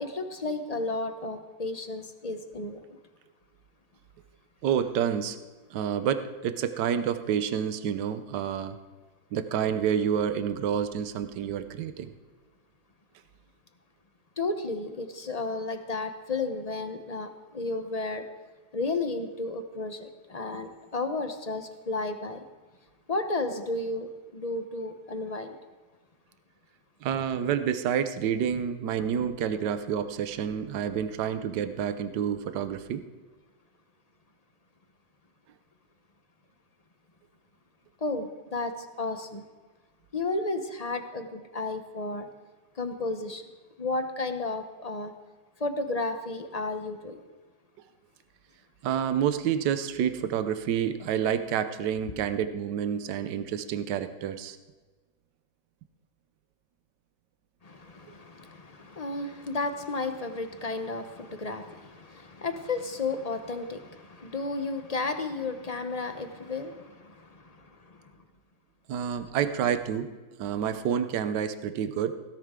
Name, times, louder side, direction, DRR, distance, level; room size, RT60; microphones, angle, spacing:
voice 1, 0.0-2.8 14.4-18.2 18.7-22.4 23.1-25.6 38.0-39.4 40.1-42.3 42.8-43.4 43.8-45.1 45.6-47.2 57.6-68.0, left 3 dB, 35° left, 6 dB, 0.6 m, -33 dB
voice 2, 4.6-5.4 5.7-8.8 9.3-12.1 27.0-33.0 48.8-54.6 68.9-70.1 70.4-72.1, right 8 dB, 65° right, 10 dB, 1.4 m, -28 dB
17.0 x 16.5 x 3.7 m, 1.3 s
omnidirectional pair, 2.1 m